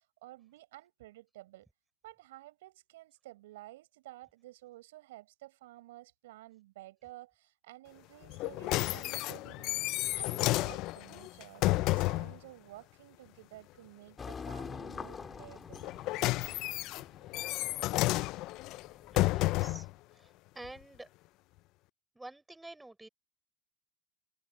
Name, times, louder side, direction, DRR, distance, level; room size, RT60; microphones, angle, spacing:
voice 1, 0.0-1.7 2.0-15.9, right 17 dB, 85° right, 6.3 m, -52 dB
sound 1, 8.3-12.4 15.7-19.9 20.6-20.7, left 19 dB, 55° left, 0.4 m, -31 dB
sound 2, 14.2-19.8, left 6 dB, 25° left, 2.0 m, -46 dB
voice 2, 19.1-19.9 20.1-21.1 22.1-23.1, right 2 dB, 5° right, 6.7 m, -49 dB
supercardioid pair, 120°, 0 cm